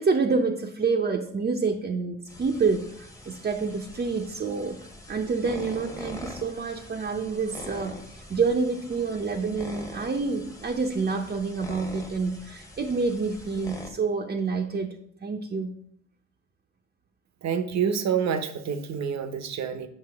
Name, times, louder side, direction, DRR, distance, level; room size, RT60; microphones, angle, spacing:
voice 1, 0.0-2.9 3.3-4.8 5.1-14.9 15.2-15.8, right 4 dB, 30° right, 1 dB, 0.8 m, -27 dB
sound 1, 2.3-13.9, left 1 dB, 10° left, 1.2 m, -44 dB
voice 2, 17.4-19.9, right 7 dB, 60° right, 10 dB, 0.9 m, -27 dB
7.6 x 5.7 x 3.5 m, 0.66 s
cardioid pair, 90°, 30 cm